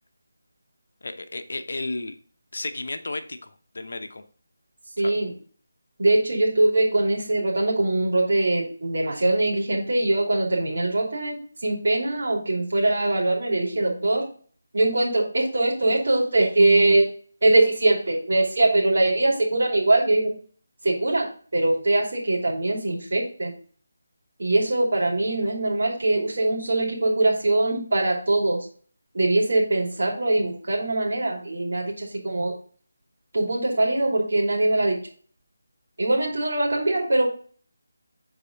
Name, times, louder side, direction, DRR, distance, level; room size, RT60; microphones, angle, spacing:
voice 1, 1.0-2.2 2.5-4.2 5.0-5.2, left 2 dB, 60° left, 8 dB, 0.8 m, -33 dB
voice 2, 5.0-5.3 6.0-14.2 14.7-17.1 17.4-20.3 20.8-23.5 24.4-28.7 29.1-32.5 33.3-35.0 36.0-37.3, right 2 dB, 60° right, -1 dB, 2.8 m, -22 dB
8.2 x 4.2 x 3.9 m, 0.43 s
figure-of-eight pair, 155°, 0 cm